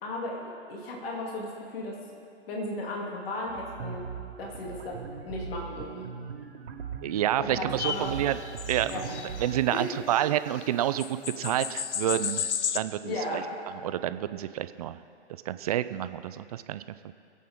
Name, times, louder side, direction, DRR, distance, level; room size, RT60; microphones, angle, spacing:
voice 1, 0.0-2.0 2.5-4.0 4.4-6.1 7.4-8.2 8.9-9.1 9.7-9.9 13.0-13.5, left 1 dB, 55° left, -2 dB, 2.8 m, -35 dB
sound 1, 3.5-9.7, right 6 dB, 65° right, 2.0 m, -40 dB
voice 2, 7.0-8.4 8.7-9.0 9.4-12.5 12.7-13.4 13.8-15.0 15.5-17.1, right 12 dB, 35° right, 13 dB, 0.4 m, -29 dB
sound 2, 7.8-10.3 10.6-10.7 10.9-12.8, left 8 dB, 75° left, 0.8 m, -34 dB
25.0 x 8.4 x 3.7 m, 2.4 s
hypercardioid pair, 135°, 34 cm